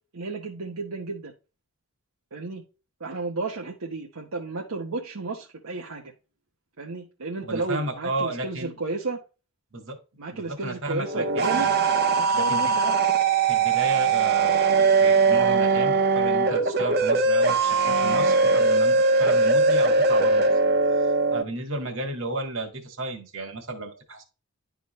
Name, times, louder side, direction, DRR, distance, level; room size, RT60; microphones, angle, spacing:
voice 1, 0.1-1.3 2.3-2.6 3.0-6.1 6.8-9.2 10.2-11.7 12.1-13.0, right 3 dB, 80° right, -1 dB, 1.1 m, -32 dB
voice 2, 7.4-8.8 9.7-10.0 10.3-11.8 12.3-12.8 13.5-20.5 21.3-24.2, right 2 dB, 65° right, 4 dB, 1.9 m, -33 dB
sound 1, 11.0-21.4, right 4 dB, 45° right, 0.9 m, -21 dB
11.0 x 3.8 x 3.1 m, 0.32 s
head